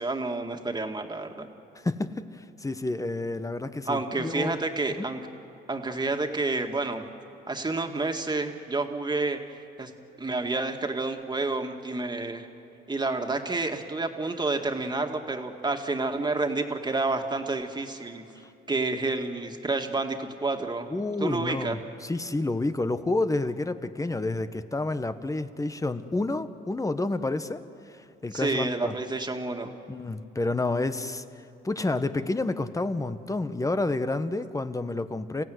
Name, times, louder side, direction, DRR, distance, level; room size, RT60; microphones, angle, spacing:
voice 1, 0.0-1.5 3.9-5.2 5.7-7.0 7.5-9.4 9.8-9.9 10.2-12.5 12.9-18.2 18.7-20.9 21.2-21.8 28.3-29.7, right 3 dB, 20° right, 4 dB, 2.2 m, -29 dB
voice 2, 1.8-2.2 2.6-4.6 5.0-5.1 20.9-27.6 28.2-28.9 29.9-31.2 31.6-35.4, left 2 dB, 15° left, 11 dB, 1.1 m, -29 dB
29.5 x 16.0 x 9.5 m, 2.7 s
cardioid pair, 90°, 20 cm